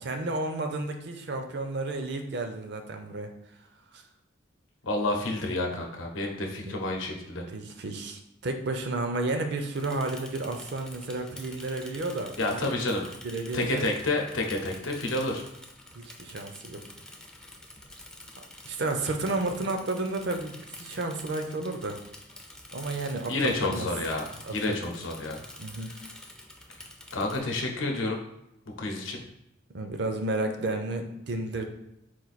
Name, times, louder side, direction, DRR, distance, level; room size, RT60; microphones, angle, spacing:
voice 1, 0.0-3.3 6.6-6.7 7.5-12.7 13.2-13.9 16.0-16.8 18.6-22.0 22.7-23.9 24.4-24.8 25.6-25.9 29.7-31.6, right 2 dB, 60° right, 6 dB, 0.5 m, -32 dB
voice 2, 4.8-7.4 12.4-13.0 13.5-15.4 23.3-25.4 27.1-28.2 28.8-29.2, left 2 dB, 85° left, 1 dB, 0.8 m, -29 dB
Bicycle / Mechanisms, 9.7-27.4, left 1 dB, 5° left, 0.4 m, -47 dB
4.4 x 2.5 x 4.1 m, 0.83 s
head